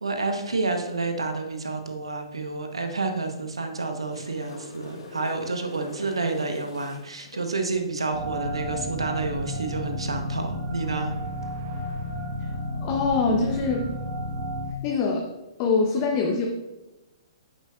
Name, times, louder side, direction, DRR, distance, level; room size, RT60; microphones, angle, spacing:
voice 1, 0.0-11.1, right 3 dB, 85° right, 5 dB, 1.1 m, -29 dB
sound 1, 4.0-7.4 11.3-11.4, left 3 dB, 65° left, 1.4 m, -43 dB
sound 2, 8.1-14.7, equal, 40° right, 1.3 m, -32 dB
voice 2, 12.8-13.9 14.8-15.3 15.6-16.5, left 4 dB, 35° left, 1 dB, 0.8 m, -24 dB
9.4 x 7.4 x 2.5 m, 1.1 s
figure-of-eight pair, 120°, 3 cm